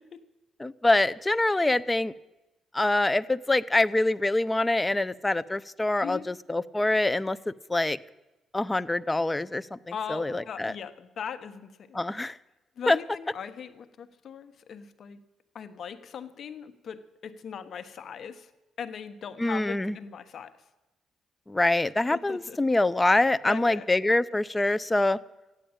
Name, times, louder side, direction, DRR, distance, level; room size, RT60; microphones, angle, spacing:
voice 1, 0.6-2.1 2.7-8.0 8.5-9.8 10.1-10.7 11.9-12.4 12.9-13.0 19.4-19.9 21.5-25.2, left 2 dB, 15° left, 16 dB, 0.6 m, -25 dB
voice 2, 9.9-12.0 12.8-15.2 15.5-18.5 18.8-20.5 22.1-22.6 23.4-23.9, left 7 dB, 60° left, 11 dB, 1.2 m, -39 dB
14.5 x 10.0 x 8.8 m, 1.0 s
cardioid pair, 90°, 0 cm